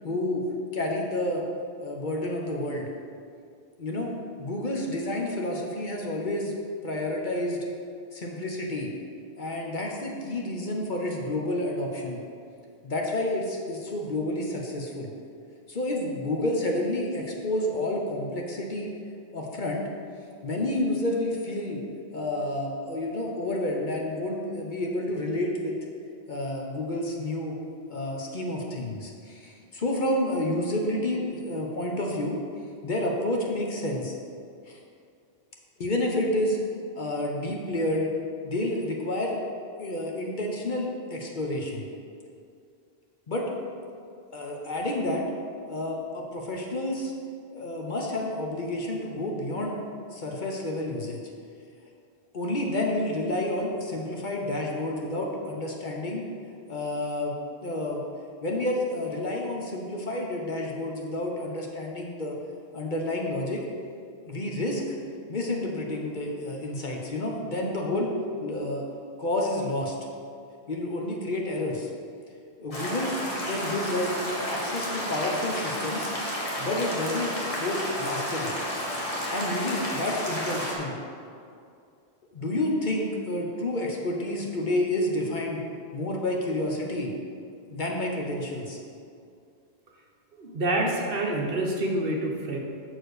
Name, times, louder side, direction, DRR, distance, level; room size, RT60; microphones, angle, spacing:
voice 1, 0.0-0.4 0.7-1.4 1.8-2.9 3.8-4.1 4.4-6.5 6.8-7.6 8.1-8.9 9.4-12.2 12.8-15.1 15.7-18.9 19.3-19.8 20.4-21.8 22.1-25.7 26.3-27.6 27.9-32.4 32.8-34.1 34.7-34.8 35.8-36.6 37.0-38.1 38.4-39.4 39.8-41.8 43.3-43.5 44.3-45.2 45.7-47.1 47.5-49.8 50.1-51.2 52.3-56.3 56.7-57.3 57.6-58.0 58.4-62.4 62.7-63.6 64.2-64.8 65.3-68.1 68.4-68.8 69.2-69.9 70.7-71.9 72.6-76.1 76.6-78.5 79.3-81.0 82.3-85.6 85.9-87.1 87.7-88.8, left 1 dB, 50° left, 0 dB, 1.0 m, -29 dB
sound 1, 72.7-80.8, equal, 35° left, 1.4 m, -31 dB
voice 2, 90.3-92.6, right 1 dB, 60° right, 0 dB, 1.1 m, -27 dB
6.2 x 4.6 x 6.6 m, 2.4 s
omnidirectional pair, 1.1 m